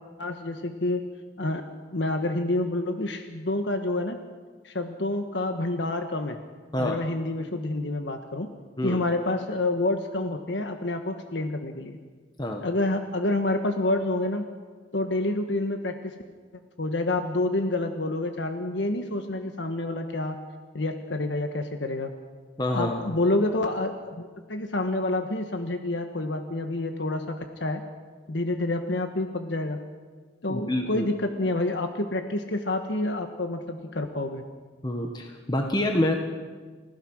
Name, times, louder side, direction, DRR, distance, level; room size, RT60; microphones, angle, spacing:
voice 1, 0.2-1.0 1.4-1.6 1.9-4.2 4.6-6.4 6.8-8.5 8.8-12.0 12.6-14.4 14.9-16.1 16.8-20.3 20.7-22.1 22.7-27.8 28.3-29.8 30.4-34.4, left 2 dB, 75° left, 6 dB, 1.3 m, -28 dB
voice 2, 22.6-23.0 30.5-31.1 34.8-36.1, left 1 dB, 25° left, 3 dB, 1.5 m, -27 dB
29.5 x 16.0 x 6.4 m, 1.5 s
head